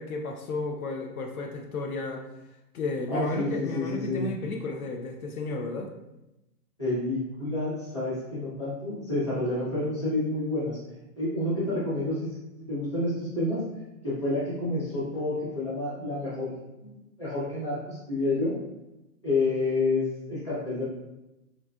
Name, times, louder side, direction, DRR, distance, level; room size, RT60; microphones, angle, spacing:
voice 1, 0.0-2.3 2.7-5.9, left 3 dB, 65° left, 3 dB, 0.6 m, -33 dB
voice 2, 3.1-4.3 6.8-10.8 11.2-12.3 12.7-13.6 14.0-16.5 16.8-18.5 19.2-20.0 20.3-20.8, left 2 dB, 20° left, -9 dB, 0.6 m, -29 dB
4.6 x 2.7 x 2.3 m, 0.95 s
hypercardioid pair, 180°, 46 cm